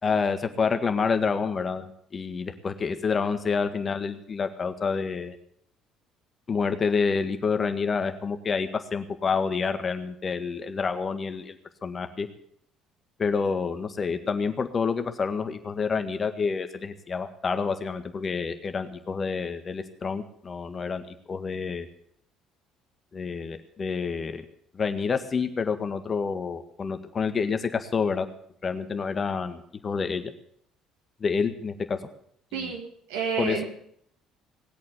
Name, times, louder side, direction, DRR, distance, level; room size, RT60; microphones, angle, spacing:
voice 1, 0.0-5.4 6.5-11.6 11.8-12.3 13.2-21.9 23.1-24.5 24.7-28.3 28.6-30.3 31.2-32.0 32.5-32.7 33.4-33.6, left 5 dB, 40° left, 8 dB, 1.7 m, -28 dB
voice 2, 32.5-33.6, right 5 dB, 80° right, 0 dB, 3.7 m, -30 dB
19.0 x 8.5 x 8.2 m, 0.68 s
hypercardioid pair, 60°, 0 cm